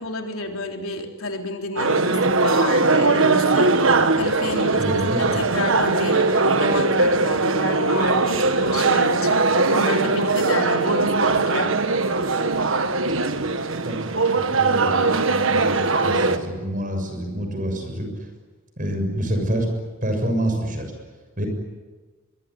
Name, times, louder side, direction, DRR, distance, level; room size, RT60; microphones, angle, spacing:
voice 1, 0.0-3.8 4.1-9.4 9.7-11.8, left 2 dB, 85° left, 3 dB, 3.7 m, -30 dB
sound 1, 1.8-16.4, right 3 dB, 70° right, 1.6 m, -20 dB
Hammer, 3.9-6.2 6.7-7.6 8.0-8.9 10.0-10.1 10.5-10.6 11.0-11.7 12.2-12.8 13.1-13.8, right 1 dB, 25° right, 2.7 m, -44 dB
voice 2, 4.8-5.4 13.1-13.5 13.8-18.1 18.8-19.7 20.0-20.9 21.4-21.5, right 1 dB, 40° right, 5 dB, 6.9 m, -27 dB
23.5 x 23.0 x 10.0 m, 1.3 s
head